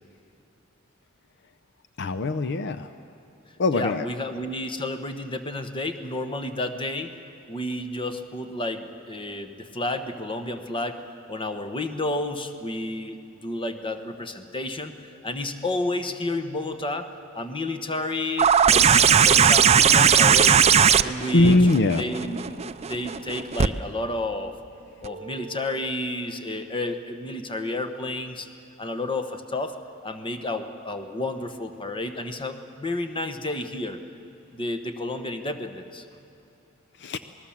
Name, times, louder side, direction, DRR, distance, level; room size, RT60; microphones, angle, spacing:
voice 1, 2.0-2.9 3.6-4.1 21.3-22.0 37.0-37.2, left 2 dB, 55° left, 11 dB, 0.6 m, -21 dB
voice 2, 3.7-7.2 7.5-11.0 11.3-14.9 15.2-17.1 17.3-20.6 21.0-22.6 22.8-24.6 25.0-28.5 28.8-29.8 30.0-34.0 34.5-36.0, left 2 dB, 25° left, 8 dB, 1.1 m, -31 dB
sound 1, 18.4-23.7 25.0-25.1, right 7 dB, 30° right, 0.5 m, -18 dB
27.0 x 19.0 x 7.3 m, 2.6 s
head